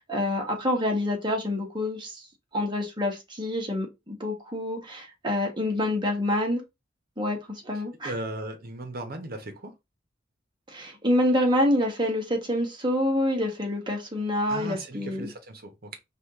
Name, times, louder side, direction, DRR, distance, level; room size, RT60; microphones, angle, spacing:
voice 1, 0.0-2.2 2.5-6.6 7.2-8.1 10.7-15.3, left 1 dB, 25° right, 1.4 m, -27 dB
voice 2, 8.0-9.7 14.5-16.0, right 1 dB, 55° right, 1.2 m, -37 dB
4.9 x 2.6 x 3.7 m
head